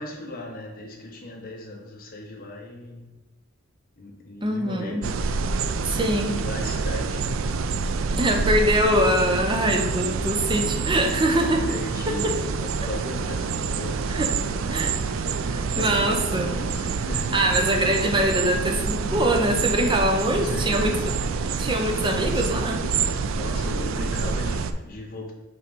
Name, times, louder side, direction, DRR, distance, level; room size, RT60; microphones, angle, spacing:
voice 1, 0.0-3.1 4.0-5.2 6.3-7.4 11.7-15.0 15.3-17.5 20.0-21.1 21.4-21.7 22.0-22.7 23.3-25.3, left 1 dB, 45° left, 0 dB, 1.3 m, -38 dB
voice 2, 4.4-5.1 5.8-6.4 8.2-11.7 12.1-12.4 14.1-14.3 14.7-15.0 15.5-16.6 17.3-21.0 21.6-22.9, right 1 dB, 25° right, 3 dB, 0.8 m, -23 dB
sound 1, 5.0-24.7, right 4 dB, 70° right, 0.4 m, -27 dB
5.5 x 4.0 x 5.3 m, 1.1 s
head